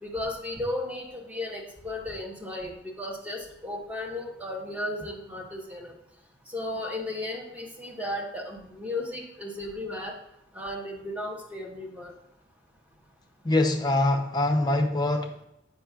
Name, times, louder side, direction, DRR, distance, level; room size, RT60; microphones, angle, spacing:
voice 1, 0.0-5.9 6.5-10.2 10.5-12.1, left 1 dB, 10° right, -1 dB, 0.9 m, -35 dB
voice 2, 13.4-15.5, left 2 dB, 25° left, 4 dB, 0.5 m, -24 dB
7.4 x 5.5 x 2.3 m, 0.82 s
head